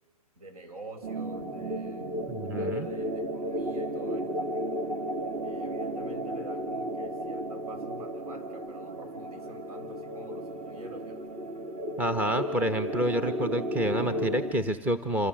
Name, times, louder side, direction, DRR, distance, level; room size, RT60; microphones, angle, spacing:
voice 1, 0.4-2.2 2.4-4.5 5.4-11.4, right 2 dB, 70° right, 6 dB, 7.0 m, -47 dB
sound 1, 1.0-14.5, right 1 dB, 30° right, 2.4 m, -34 dB
voice 2, 2.3-2.9 12.0-15.3, equal, 10° right, 9 dB, 1.0 m, -28 dB
28.0 x 27.0 x 7.7 m, 1.2 s
hypercardioid pair, 140°, 20 cm